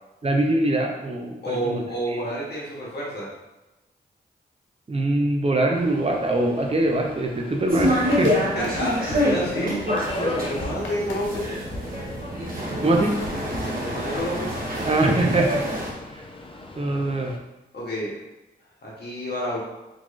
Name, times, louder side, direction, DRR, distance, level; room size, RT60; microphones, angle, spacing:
voice 1, 0.2-1.8 2.1-2.3 4.9-8.4 12.8-13.2 14.8-15.8 16.1-16.2 16.8-17.4, right 2 dB, 30° right, 1 dB, 0.8 m, -23 dB
voice 2, 1.4-3.3 8.5-9.8 10.2-11.5 13.6-14.5 17.7-18.2 18.8-19.6, equal, 60° left, -5 dB, 1.5 m, -29 dB
Subway metro underground, 5.7-17.4, left 2 dB, 30° left, 0.6 m, -39 dB
sound 1, 7.7-15.9, equal, 50° right, 1.1 m, -26 dB
sound 2, 7.8-12.6 13.2-14.4, left 2 dB, 80° left, 0.8 m, -40 dB
3.8 x 3.0 x 2.6 m, 1.0 s
supercardioid pair, 40°, 19 cm